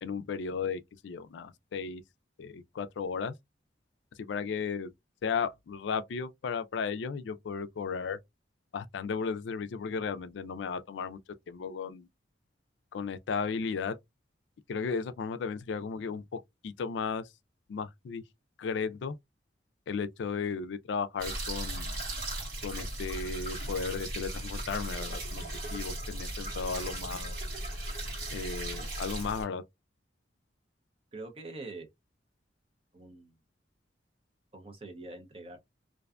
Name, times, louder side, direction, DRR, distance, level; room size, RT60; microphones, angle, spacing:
voice 1, 0.0-2.0 2.4-3.3 4.2-4.9 5.2-8.2 8.7-11.2 11.5-12.1 12.9-14.0 14.7-17.3 17.7-18.2 18.6-19.2 19.9-22.0 22.6-25.4 25.7-27.3 28.3-29.6, left 5 dB, 75° left, 0.3 m, -35 dB
sound 1, 21.2-29.4, right 1 dB, 50° right, 1.3 m, -37 dB
voice 2, 31.1-31.9 32.9-33.4 34.5-35.6, right 2 dB, 30° right, 0.6 m, -44 dB
2.5 x 2.2 x 2.3 m
head